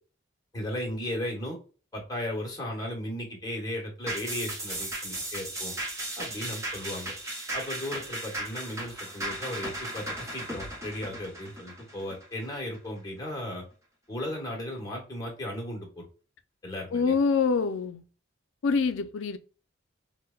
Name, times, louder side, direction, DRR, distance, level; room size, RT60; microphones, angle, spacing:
voice 1, 0.5-1.6 1.9-5.7 6.2-7.1 7.5-13.6 14.1-16.0 16.6-17.1, left 1 dB, 20° left, 1.1 m, -36 dB
sound 1, 4.1-12.8 13.2-13.3, right 1 dB, 15° right, 1.0 m, -36 dB
voice 2, 16.9-18.0 18.6-19.4, left 5 dB, 80° left, 0.4 m, -25 dB
4.3 x 2.1 x 2.3 m
head